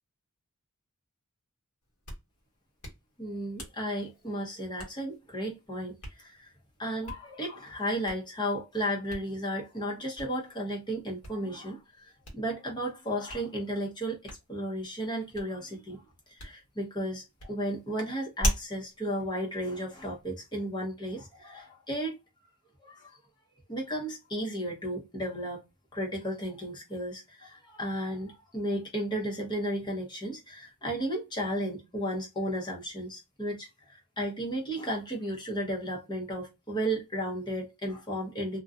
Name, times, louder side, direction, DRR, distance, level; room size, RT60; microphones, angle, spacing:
Hands, 1.8-20.3, equal, 75° left, 1.2 m, -42 dB
voice 1, 3.2-6.5 6.8-16.0 16.3-22.2 22.8-23.1 23.7-25.6 25.9-38.6, equal, 20° left, 0.8 m, -34 dB
2.6 x 2.2 x 2.3 m
head